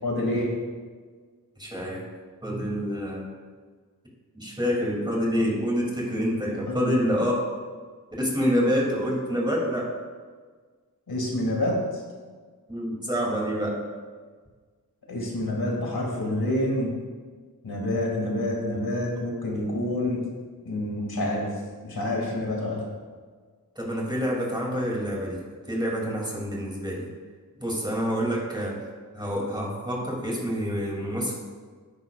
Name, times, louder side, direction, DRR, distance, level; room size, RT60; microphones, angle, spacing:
voice 1, 0.0-0.6 6.6-6.9 11.1-12.0 15.1-16.9 17.6-20.3 20.6-21.5 21.8-22.9, left 1 dB, 75° left, -2 dB, 2.5 m, -27 dB
voice 2, 1.6-2.0 2.4-3.3 4.3-7.4 8.2-9.9 12.7-13.8 23.8-27.1 27.6-28.8 29.1-31.3, equal, 10° right, -3 dB, 2.8 m, -27 dB
13.0 x 9.9 x 2.5 m, 1.5 s
wide cardioid pair, 80°, 37 cm